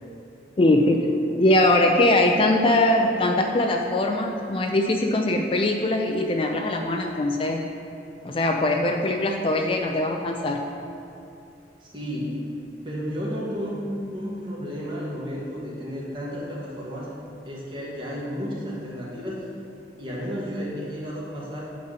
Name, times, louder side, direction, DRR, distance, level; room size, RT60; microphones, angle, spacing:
voice 1, 0.6-7.6 8.2-10.6, left 1 dB, 30° left, 3 dB, 0.4 m, -21 dB
voice 2, 11.8-12.4 12.8-13.8 14.1-17.1 17.4-19.5 20.0-21.6, equal, 30° right, -6 dB, 1.8 m, -32 dB
8.4 x 4.1 x 6.6 m, 2.7 s
head